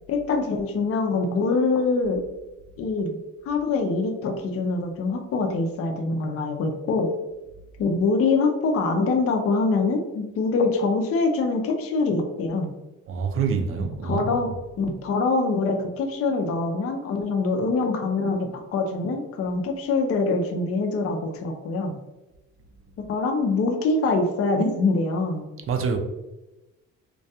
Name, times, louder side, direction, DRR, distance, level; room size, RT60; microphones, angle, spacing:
voice 1, 0.1-2.2 2.8-7.1 7.8-12.7 14.0-14.5 14.8-22.0 23.1-25.5, left 3 dB, 50° left, 3 dB, 0.5 m, -24 dB
voice 2, 13.1-14.4 25.7-26.0, right 5 dB, 45° right, 5 dB, 0.4 m, -26 dB
2.3 x 2.2 x 2.7 m, 1.0 s
cardioid pair, 90°, 30 cm